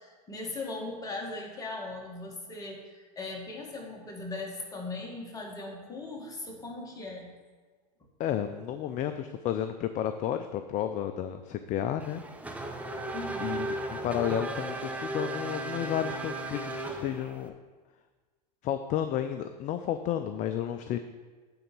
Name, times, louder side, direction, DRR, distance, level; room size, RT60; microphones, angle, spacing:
voice 1, 0.0-7.3 13.1-13.6, left 2 dB, 15° left, -1 dB, 1.9 m, -39 dB
voice 2, 8.2-12.2 13.4-17.5 18.6-21.0, left 10 dB, 35° left, 9 dB, 0.5 m, -32 dB
Race car auto racing / Accelerating revving vroom, 12.0-17.5, right 2 dB, 5° right, 0.8 m, -36 dB
9.4 x 4.0 x 6.9 m, 1.4 s
hypercardioid pair, 105°, 21 cm